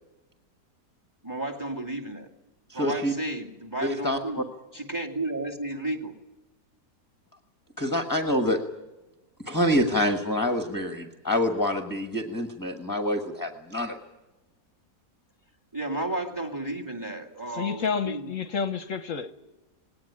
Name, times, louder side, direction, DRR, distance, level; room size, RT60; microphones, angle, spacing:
voice 1, 1.2-2.3 2.7-4.4 4.7-6.1 15.7-18.3, right 2 dB, 10° right, 2.3 m, -33 dB
voice 2, 2.7-3.1 3.8-4.4 7.8-8.6 9.4-14.0, left 1 dB, 15° left, 1.3 m, -26 dB
voice 3, 17.5-19.3, left 6 dB, 55° left, 1.2 m, -29 dB
20.0 x 18.0 x 10.0 m
omnidirectional pair, 1.7 m